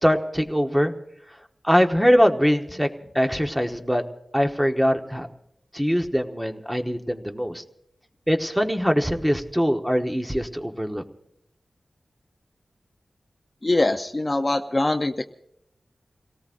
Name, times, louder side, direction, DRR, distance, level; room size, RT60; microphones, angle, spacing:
voice 1, 0.0-0.9 1.6-2.9 3.1-4.0 4.3-5.3 5.7-7.6 8.3-11.0, equal, 5° right, 5 dB, 1.1 m, -22 dB
voice 2, 13.6-15.2, left 2 dB, 30° left, 5 dB, 0.6 m, -23 dB
29.0 x 18.0 x 2.6 m, 0.76 s
wide cardioid pair, 90°, 0 cm